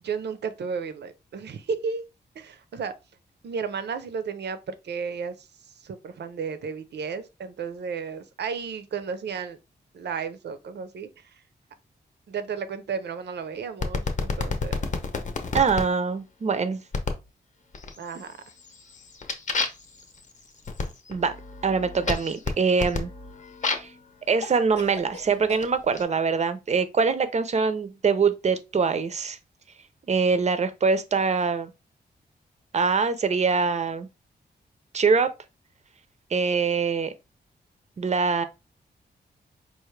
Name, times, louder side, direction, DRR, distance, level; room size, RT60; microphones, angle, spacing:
voice 1, 0.0-2.0 2.4-2.9 3.4-5.5 5.8-9.6 9.9-11.1 12.3-14.8 18.0-18.4, right 6 dB, 75° right, 0.6 m, -33 dB
sound 1, 13.8-15.9 16.9-17.3 17.7-18.2 18.6-24.0 24.8-26.0, left 4 dB, 45° left, 0.7 m, -31 dB
voice 2, 15.5-16.8 21.1-21.3 21.6-23.1 23.7-23.9 24.3-29.4 30.1-31.7 32.7-34.1 34.9-35.3 36.3-37.1 38.0-38.4, right 5 dB, 40° right, 0.5 m, -23 dB
Cough, 22.1-22.9 24.4-25.7, left 4 dB, 85° left, 0.8 m, -42 dB
4.8 x 2.5 x 3.2 m
wide cardioid pair, 145°, 18 cm